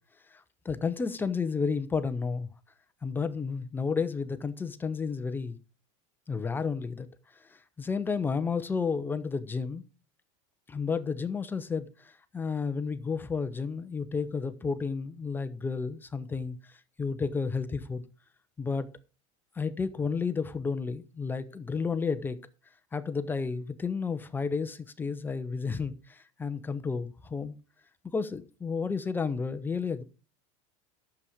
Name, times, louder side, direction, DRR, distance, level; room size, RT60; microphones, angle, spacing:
voice 1, 0.6-2.5 3.0-5.6 6.3-7.1 7.8-9.8 10.7-11.9 12.3-16.6 17.0-18.0 18.6-18.9 19.6-22.4 22.9-27.6 28.1-30.0, left 5 dB, 10° left, 0.7 m, -31 dB
11.5 x 7.2 x 5.0 m
supercardioid pair, 150°, 17 cm